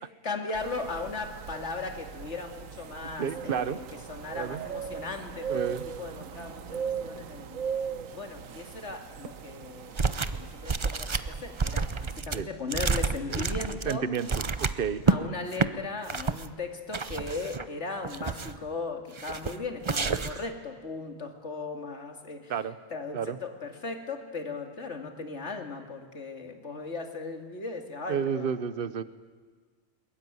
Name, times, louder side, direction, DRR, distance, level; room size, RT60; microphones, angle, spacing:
voice 1, 0.2-3.8 4.1-7.6 8.1-9.9 10.3-14.1 15.1-22.5 22.9-28.5, left 3 dB, 55° left, 5 dB, 2.6 m, -37 dB
sound 1, 0.5-12.2, right 7 dB, 75° right, 1.3 m, -39 dB
voice 2, 3.2-3.8 4.3-4.7 5.5-5.9 12.3-12.5 13.3-13.5 13.8-15.0 22.5-22.8 23.1-23.4 28.1-29.0, right 7 dB, 45° right, 14 dB, 1.1 m, -31 dB
sound 2, 10.0-10.4 10.7-15.2 15.5-15.7 16.1-16.5 16.9-17.7 18.0-18.6 19.2-19.6 19.8-20.5, right 4 dB, 30° right, 0.6 m, -29 dB
21.5 x 21.5 x 9.5 m, 1.5 s
omnidirectional pair, 1.4 m